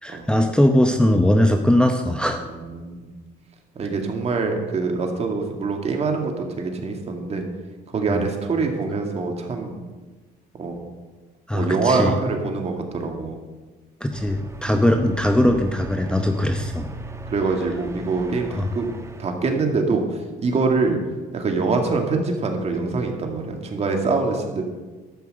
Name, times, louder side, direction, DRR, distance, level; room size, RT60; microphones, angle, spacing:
voice 1, 0.0-2.4 8.1-8.3 11.5-12.1 14.0-16.9 18.6-18.7, left 1 dB, 5° left, 5 dB, 0.8 m, -20 dB
voice 2, 2.3-3.1 3.8-7.4 7.9-9.8 10.6-10.8 11.5-13.4 14.7-14.9 17.3-18.9 19.2-21.0 21.3-24.6, right 4 dB, 40° right, 3 dB, 2.1 m, -24 dB
sound 1, 14.1-19.2, right 3 dB, 15° right, 1.1 m, -38 dB
12.5 x 5.8 x 7.8 m, 1.3 s
cardioid pair, 110°, 17 cm